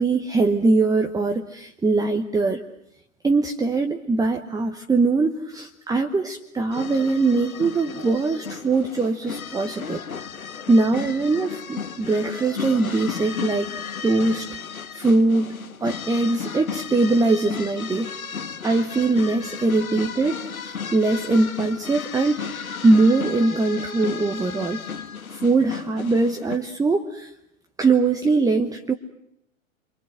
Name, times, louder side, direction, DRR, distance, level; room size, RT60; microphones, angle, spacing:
voice 1, 0.0-2.6 3.2-10.0 10.7-13.7 14.0-14.6 14.9-15.5 15.8-18.1 18.6-22.4 22.8-24.8 25.3-27.3 27.8-28.9, right 3 dB, 10° right, 5 dB, 1.1 m, -21 dB
sound 1, 6.7-26.6, left 6 dB, 85° left, 1.5 m, -34 dB
29.0 x 24.5 x 8.0 m, 0.77 s
figure-of-eight pair, 100°, 41 cm